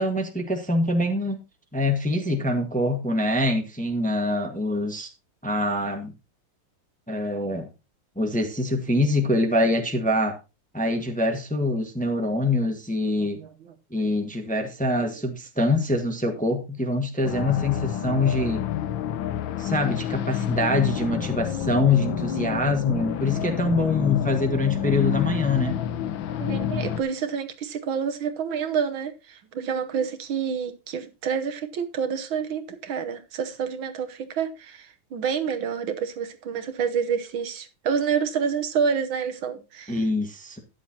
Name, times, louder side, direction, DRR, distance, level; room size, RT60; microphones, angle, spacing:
voice 1, 0.0-1.4 1.7-5.1 5.4-6.1 7.1-7.7 8.1-10.3 10.7-13.4 13.9-18.6 19.6-25.8 39.9-40.6, left 2 dB, 5° left, 1.2 m, -24 dB
voice 2, 13.2-13.7 24.3-24.4 26.4-40.0, right 7 dB, 70° right, 1.8 m, -28 dB
sound 1, 17.2-27.0, left 10 dB, 70° left, 1.5 m, -29 dB
13.0 x 9.8 x 2.9 m
omnidirectional pair, 2.3 m